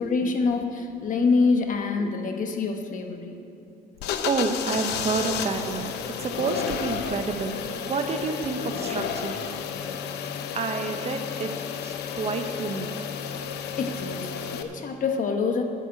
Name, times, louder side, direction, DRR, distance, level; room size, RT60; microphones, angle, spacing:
voice 1, 0.0-3.4 13.8-15.9, left 4 dB, 50° left, 5 dB, 1.2 m, -26 dB
sound 1, 4.0-14.6, left 7 dB, 80° left, 0.8 m, -32 dB
voice 2, 4.2-9.7 10.5-13.1, right 4 dB, 40° right, 6 dB, 0.9 m, -29 dB
9.9 x 7.3 x 8.5 m, 2.6 s
cardioid pair, 110°, 17 cm